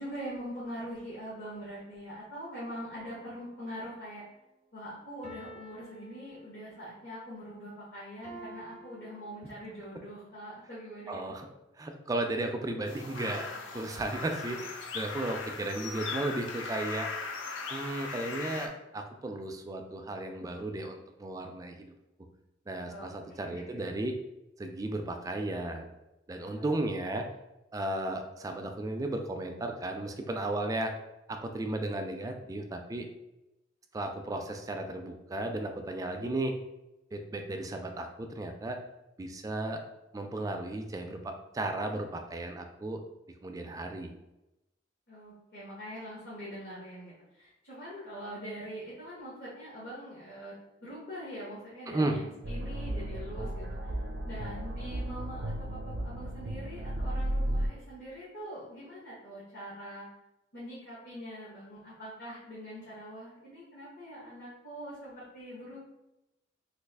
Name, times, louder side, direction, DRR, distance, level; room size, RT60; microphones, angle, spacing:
voice 1, 0.0-4.2 4.7-11.3 13.5-13.6 15.1-15.3 22.8-23.8 26.5-26.6 45.1-50.5 50.8-53.9 54.2-60.1 60.5-65.8, equal, 60° left, -8 dB, 1.1 m, -43 dB
sound 1, 2.9-4.2 5.2-6.9 8.2-9.9 10.6-10.7, right 1 dB, 40° left, 0.8 m, -51 dB
voice 2, 11.1-11.5 11.8-17.1 17.7-21.9 22.7-24.1 24.6-25.8 26.3-27.3 27.7-30.9 31.3-33.1 33.9-36.5 37.1-38.8 39.2-39.8 40.1-43.0 43.4-44.2 51.9-52.2, right 2 dB, 20° right, 4 dB, 0.3 m, -34 dB
sound 2, 12.9-18.7, left 4 dB, 80° left, 0.5 m, -39 dB
sound 3, 52.4-57.7, right 1 dB, 75° right, 0.5 m, -34 dB
3.2 x 2.3 x 3.4 m, 0.95 s
head